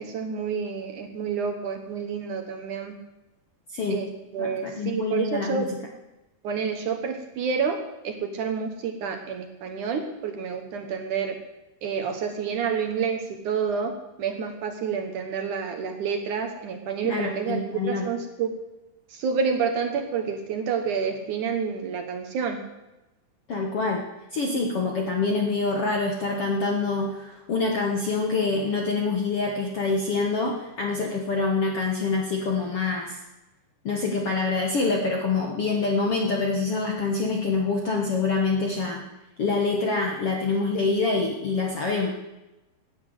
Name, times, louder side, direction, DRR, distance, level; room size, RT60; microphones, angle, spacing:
voice 1, 0.0-2.9 3.9-4.1 4.3-5.7 6.4-7.8 8.0-11.4 11.8-13.9 14.2-18.5 19.1-22.6, right 6 dB, 60° right, 5 dB, 2.4 m, -29 dB
voice 2, 3.7-4.0 4.4-5.7 17.0-18.0 23.5-24.0 24.3-33.2 33.8-39.0 39.4-42.1, left 3 dB, 55° left, 1 dB, 1.6 m, -26 dB
17.0 x 10.0 x 8.1 m, 1.0 s
omnidirectional pair, 4.6 m